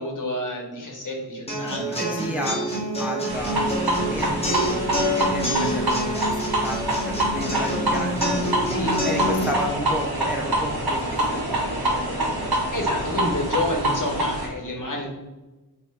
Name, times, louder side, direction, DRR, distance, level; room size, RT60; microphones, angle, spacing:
voice 1, 0.0-2.2 3.3-3.6 8.6-9.5 12.7-15.1, left 1 dB, 55° left, -1 dB, 1.1 m, -30 dB
sound 1, 1.5-9.5, equal, 15° left, 1.2 m, -27 dB
voice 2, 1.9-6.3 6.6-12.3, equal, 5° right, 1 dB, 0.5 m, -32 dB
sound 2, 3.3-14.5, right 1 dB, 70° right, 1.1 m, -26 dB
3.0 x 2.8 x 4.5 m, 1.1 s
wide cardioid pair, 55°, 39 cm